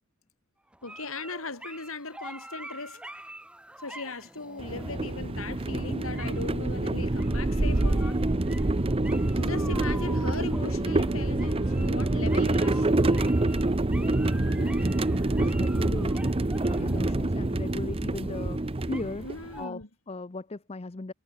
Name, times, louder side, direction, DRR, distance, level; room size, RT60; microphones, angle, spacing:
sound 1, 0.7-19.7, right 1 dB, 5° right, 1.1 m, -46 dB
voice 1, 0.8-3.0 3.8-8.2 9.3-13.3 19.2-19.9, left 3 dB, 75° left, 4.0 m, -38 dB
sound 2, 4.6-19.6, right 2 dB, 25° right, 0.7 m, -26 dB
Drill, 4.6-13.2, right 1 dB, 65° right, 3.3 m, -46 dB
voice 2, 14.4-19.2 19.6-19.8 20.1-21.1, left 2 dB, 30° left, 0.6 m, -38 dB
head